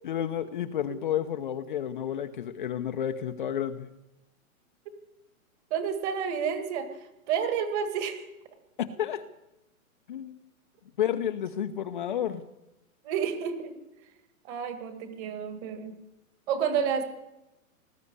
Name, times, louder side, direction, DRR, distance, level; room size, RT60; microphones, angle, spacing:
voice 1, 0.0-3.9 9.0-9.2 10.1-10.4 11.0-12.4, left 10 dB, 35° left, 7 dB, 0.9 m, -31 dB
voice 2, 5.7-6.9 7.3-8.3 13.0-13.8 14.4-15.9 16.5-17.0, right 7 dB, 20° right, 9 dB, 1.8 m, -30 dB
20.0 x 14.0 x 9.6 m, 0.93 s
hypercardioid pair, 175°, 43 cm